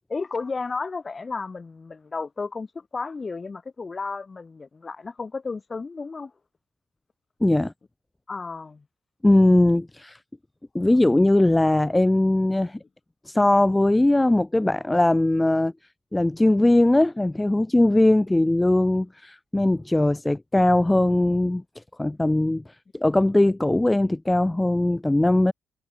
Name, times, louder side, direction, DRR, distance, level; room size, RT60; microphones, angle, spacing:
voice 1, 0.1-6.3 8.3-8.8, left 4 dB, 35° left, 1.4 m, -33 dB
voice 2, 7.4-7.7 9.2-10.2 10.7-12.8 13.3-15.7 16.1-21.6 22.0-22.6 22.9-25.5, left 1 dB, 15° left, 0.4 m, -20 dB
supercardioid pair, 60°, 0 cm